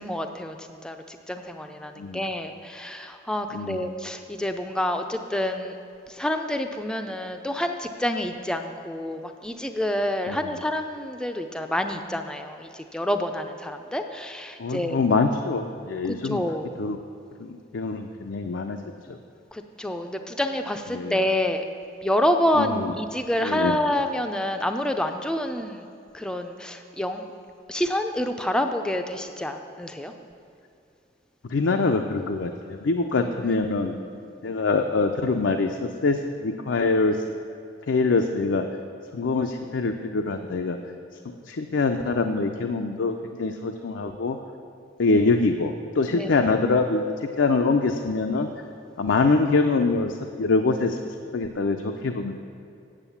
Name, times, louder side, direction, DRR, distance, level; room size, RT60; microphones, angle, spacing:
voice 1, 0.0-5.8 6.1-15.0 16.1-16.7 19.5-21.6 22.0-25.9 26.1-27.3 27.7-30.1 33.2-34.0 46.1-46.3, left 1 dB, 5° left, 6 dB, 0.4 m, -28 dB
voice 2, 3.5-3.9 10.3-10.5 14.6-16.4 16.8-17.0 17.4-18.8 19.1-19.2 20.9-21.2 22.6-22.9 23.4-23.8 31.4-33.9 34.4-37.2 37.9-38.6 39.1-40.8 41.5-44.4 45.0-48.5 49.0-52.3, left 3 dB, 85° left, 4 dB, 0.5 m, -24 dB
9.0 x 7.2 x 7.0 m, 2.5 s
head